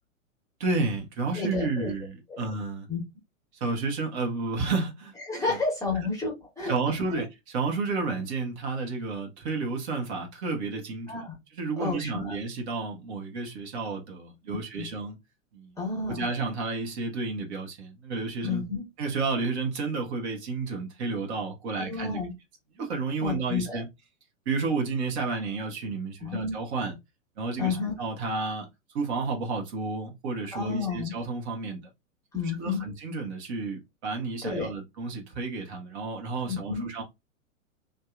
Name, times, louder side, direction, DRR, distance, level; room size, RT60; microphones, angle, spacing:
voice 1, 0.6-2.9 3.5-5.1 5.5-5.6 6.7-11.2 11.5-15.2 15.5-15.8 16.1-18.7 19.0-22.2 22.7-23.9 24.4-26.9 27.4-28.7 28.9-31.8 32.4-37.0, right 3 dB, 50° right, 1.2 m, -31 dB
voice 2, 1.3-1.9 2.3-2.4 2.9-3.0 5.3-6.7 7.1-7.2 11.1-11.3 11.8-12.4 14.8-14.9 15.8-16.3 18.4-18.8 21.7-22.3 23.2-23.8 26.2-26.5 27.6-27.9 30.5-31.1 32.3-32.8 34.4-34.7 36.4-36.9, left 4 dB, 10° left, 1.1 m, -31 dB
2.8 x 2.6 x 2.3 m
figure-of-eight pair, 105°, 41 cm